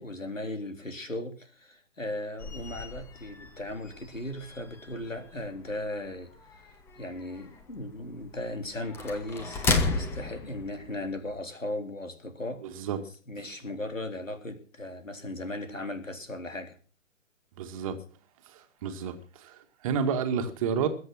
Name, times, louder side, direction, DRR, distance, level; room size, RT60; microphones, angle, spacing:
voice 1, 0.0-12.9 13.3-16.8, left 1 dB, 80° left, 6 dB, 3.8 m, -37 dB
sound 1, 2.4-11.4, left 3 dB, 5° left, 1.1 m, -35 dB
voice 2, 12.6-13.0 17.6-18.0 18.5-20.9, right 7 dB, 25° right, 8 dB, 2.0 m, -30 dB
21.5 x 8.1 x 6.3 m, 0.41 s
figure-of-eight pair, 130°, 38 cm